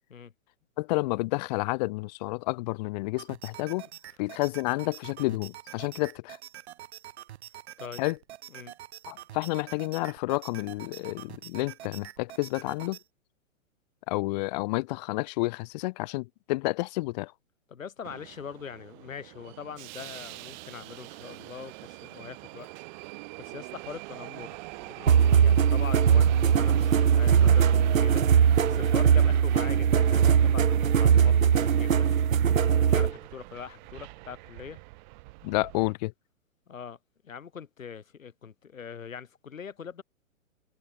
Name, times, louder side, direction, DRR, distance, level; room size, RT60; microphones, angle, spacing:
voice 1, 0.8-3.9 4.2-6.4 8.0-8.2 9.1-13.0 14.1-17.3 35.4-36.1, left 22 dB, 35° left, 1.1 m, -30 dB
sound 1, 3.2-13.0, right 13 dB, 55° right, 6.3 m, -46 dB
voice 2, 17.7-22.7 23.4-32.1 32.8-34.8 36.7-37.0 37.2-40.0, left 7 dB, 85° left, 3.8 m, -42 dB
Subway metro underground, 18.0-35.9, right 24 dB, 35° right, 1.9 m, -43 dB
sound 2, 25.1-33.1, right 8 dB, 90° right, 1.4 m, -21 dB
hypercardioid pair, 140°, 39 cm